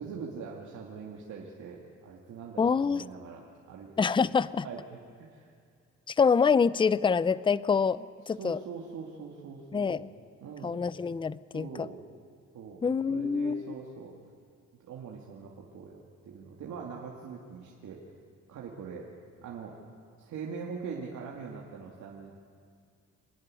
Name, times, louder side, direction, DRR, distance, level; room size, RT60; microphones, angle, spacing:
voice 1, 0.0-3.9 4.6-5.5 8.4-10.1 10.4-10.8 11.5-12.0 12.5-14.1 14.8-18.0 18.5-19.0 19.4-19.7 20.2-22.3, right 5 dB, 70° right, -2 dB, 2.3 m, -42 dB
voice 2, 2.6-3.0 4.0-4.7 6.1-8.6 9.7-10.1 10.6-11.9 12.8-13.6, left 5 dB, 15° left, 18 dB, 0.5 m, -26 dB
26.5 x 11.0 x 9.8 m, 2.2 s
cardioid pair, 90°, 30 cm